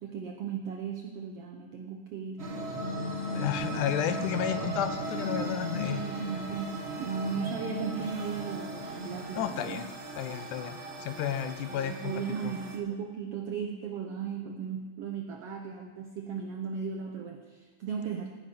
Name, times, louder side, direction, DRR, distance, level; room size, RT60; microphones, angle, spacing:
voice 1, 0.0-2.4 3.7-3.8 4.1-4.2 5.9-9.8 11.7-18.4, right 7 dB, 75° right, 3 dB, 1.4 m, -36 dB
sound 1, 2.4-12.8, equal, 30° right, 1.1 m, -37 dB
voice 2, 3.3-6.1 9.4-9.9 10.2-12.1 12.4-12.5, left 9 dB, 75° left, 10 dB, 2.1 m, -32 dB
17.0 x 9.8 x 5.3 m, 1.4 s
omnidirectional pair, 3.8 m